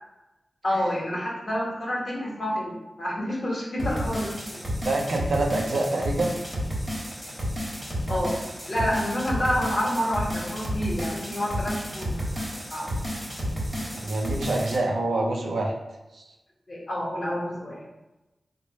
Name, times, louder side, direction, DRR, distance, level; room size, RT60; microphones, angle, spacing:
voice 1, 0.6-4.6 8.1-8.3 8.7-12.4 12.7-12.9 16.7-17.8, equal, 55° left, -4 dB, 1.2 m, -28 dB
sound 1, 3.8-14.8, equal, 15° right, 1.2 m, -31 dB
voice 2, 4.8-6.3 13.8-15.7 16.1-16.2, right 2 dB, 85° right, 0 dB, 0.5 m, -26 dB
3.2 x 2.1 x 4.1 m, 1.0 s
cardioid pair, 55°, 0 cm